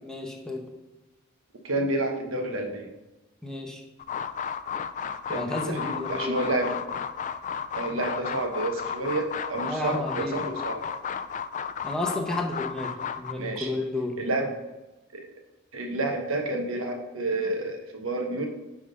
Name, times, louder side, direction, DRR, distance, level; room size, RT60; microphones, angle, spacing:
voice 1, 0.0-0.7 3.4-3.8 5.3-6.5 9.6-10.4 11.8-14.2, left 2 dB, 5° left, 1 dB, 0.9 m, -32 dB
voice 2, 1.6-2.9 5.3-6.7 7.7-10.8 13.4-13.7 14.2-14.5 15.1-15.3 15.7-18.5, right 2 dB, 70° right, 2 dB, 1.2 m, -29 dB
sound 1, 4.0-13.3, left 7 dB, 35° left, 0.3 m, -33 dB
9.3 x 3.7 x 5.3 m, 1.1 s
head